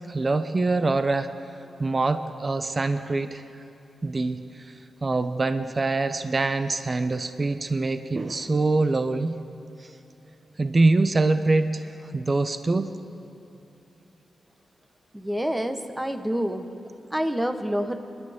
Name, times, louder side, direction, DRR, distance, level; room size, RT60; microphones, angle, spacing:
voice 1, 0.1-1.3 1.8-3.4 4.0-4.4 5.0-9.4 10.6-12.9, right 3 dB, 40° right, 10 dB, 0.7 m, -24 dB
voice 2, 15.1-16.6 17.1-18.0, equal, 10° right, 7 dB, 1.2 m, -27 dB
23.0 x 11.0 x 3.6 m, 3.0 s
cardioid pair, 55°, 0 cm